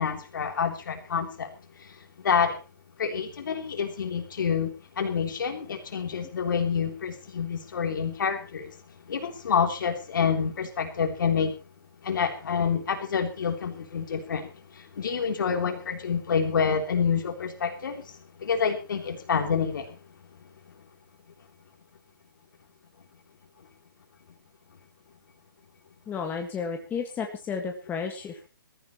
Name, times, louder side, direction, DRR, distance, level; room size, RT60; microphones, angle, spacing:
voice 1, 0.0-1.5 1.8-2.6 3.0-11.6 12.0-20.0, left 6 dB, 60° left, 3.5 m, -28 dB
voice 2, 26.1-28.5, left 6 dB, 15° left, 1.9 m, -32 dB
21.5 x 14.0 x 3.1 m
figure-of-eight pair, 135°, 12 cm